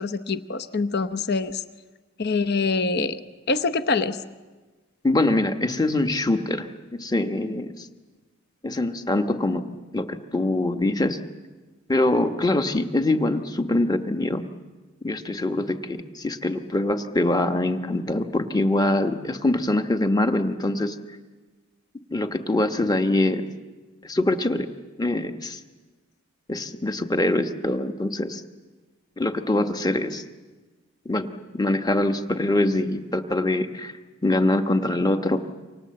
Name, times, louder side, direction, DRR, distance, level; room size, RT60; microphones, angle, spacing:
voice 1, 0.0-1.6 2.2-3.2 3.5-4.2, left 4 dB, 45° left, 12 dB, 0.9 m, -25 dB
voice 2, 5.0-7.9 8.6-9.7 9.9-11.2 11.9-14.4 15.0-21.0 22.1-23.5 24.0-24.7 25.0-25.6 26.5-28.4 29.2-30.2 31.0-31.3 31.5-33.9 34.2-35.4, left 2 dB, 20° left, 7 dB, 1.2 m, -24 dB
28.5 x 25.5 x 7.7 m, 1.3 s
head